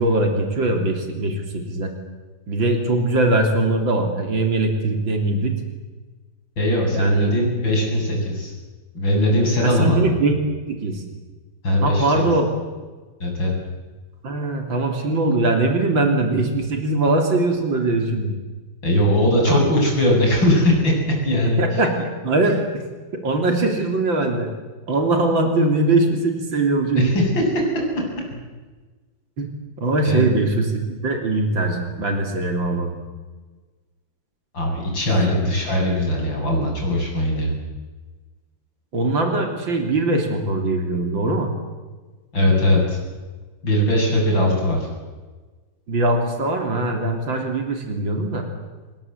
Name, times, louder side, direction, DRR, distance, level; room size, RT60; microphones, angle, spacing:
voice 1, 0.0-1.9 2.5-5.5 6.9-7.3 9.6-10.4 10.7-11.0 11.8-12.5 14.2-18.3 19.5-19.6 21.6-22.6 23.1-24.5 24.9-27.1 29.4-29.5 29.8-33.0 38.9-41.5 45.9-48.5, right 2 dB, 80° right, 4 dB, 3.9 m, -21 dB
voice 2, 6.6-8.5 8.9-10.0 11.6-12.3 13.2-13.5 18.8-21.0 21.2-21.8 27.0-27.2 28.0-28.1 28.3-28.4 30.0-30.3 34.5-37.5 42.3-43.0 43.6-44.9, left 1 dB, 75° left, -1 dB, 8.9 m, -20 dB
27.5 x 20.5 x 8.2 m, 1.3 s
omnidirectional pair, 2.1 m